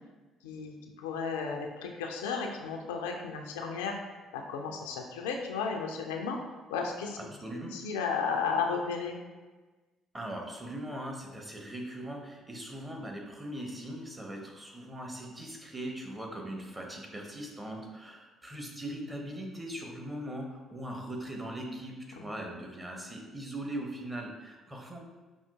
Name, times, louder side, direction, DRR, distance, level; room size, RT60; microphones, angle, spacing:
voice 1, 0.4-4.0 4.3-6.4 6.7-7.2 7.7-9.2 22.2-22.3, left 5 dB, 70° left, 2 dB, 0.3 m, -34 dB
voice 2, 7.2-7.8 10.1-25.0, right 1 dB, 20° right, 1 dB, 0.8 m, -40 dB
5.4 x 2.4 x 2.3 m, 1.3 s
figure-of-eight pair, 50°, 0 cm